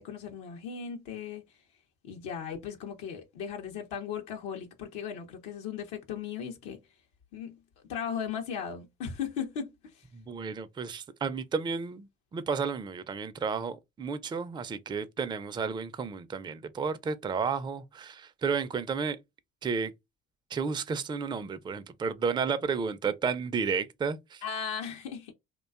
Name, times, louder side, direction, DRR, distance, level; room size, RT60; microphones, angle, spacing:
voice 1, 0.0-1.4 2.0-6.8 7.3-7.6 7.9-10.0 24.4-25.3, left 7 dB, 75° left, 0.6 m, -37 dB
voice 2, 10.1-19.2 19.6-19.9 20.5-24.4, right 5 dB, 15° right, 0.3 m, -32 dB
2.4 x 2.2 x 2.3 m
hypercardioid pair, 60°, 30 cm